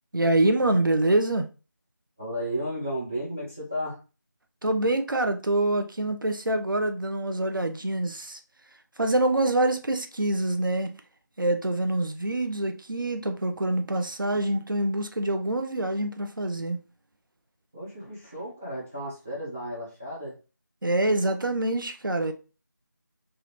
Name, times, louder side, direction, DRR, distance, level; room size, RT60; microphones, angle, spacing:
voice 1, 0.1-1.5 4.6-8.4 9.0-10.9 11.4-16.8 20.8-22.3, right 1 dB, 85° right, 0.6 m, -25 dB
voice 2, 2.2-4.0 17.7-20.4, equal, 10° right, 0.4 m, -33 dB
3.2 x 2.4 x 3.0 m
figure-of-eight pair, 170°, 11 cm